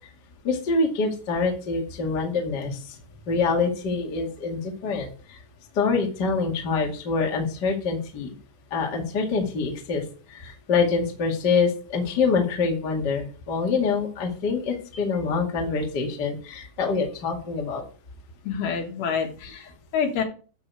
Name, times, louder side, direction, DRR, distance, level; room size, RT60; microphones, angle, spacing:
voice 1, 0.4-2.8 3.3-5.4 5.7-8.3 8.7-10.0 10.3-17.8, left 4 dB, 45° left, 0 dB, 1.3 m, -25 dB
voice 2, 18.4-20.2, left 6 dB, 80° left, 2 dB, 4.2 m, -28 dB
11.5 x 6.5 x 4.7 m, 0.39 s
omnidirectional pair, 5.6 m